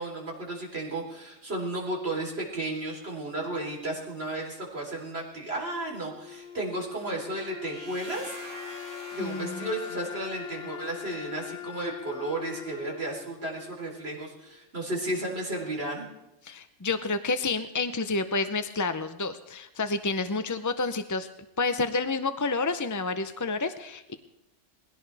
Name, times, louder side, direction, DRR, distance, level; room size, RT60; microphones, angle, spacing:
voice 1, 0.0-8.4 9.1-16.1, right 1 dB, 55° right, -2 dB, 4.0 m, -33 dB
Wind instrument woodwind instrument, 5.5-14.6, left 11 dB, 60° left, 1.0 m, -42 dB
sound 1, 7.6-11.5, right 1 dB, 75° right, 3.6 m, -45 dB
voice 2, 9.2-9.7 16.4-21.3 21.6-24.1, left 3 dB, 25° left, 10 dB, 0.4 m, -29 dB
21.0 x 17.0 x 3.4 m, 0.93 s
omnidirectional pair, 1.3 m